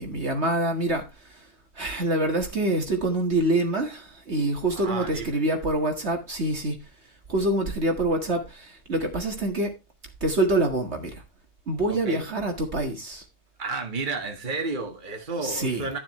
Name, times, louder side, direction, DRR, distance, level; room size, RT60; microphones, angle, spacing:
voice 1, 0.0-1.5 1.8-6.8 7.3-9.7 10.2-11.2 11.7-13.2 15.4-15.8, right 2 dB, 50° right, 2.0 m, -26 dB
voice 2, 4.7-5.5 11.9-12.3 13.6-16.0, right 3 dB, 35° right, 1.9 m, -32 dB
12.0 x 7.7 x 3.1 m
omnidirectional pair, 1.5 m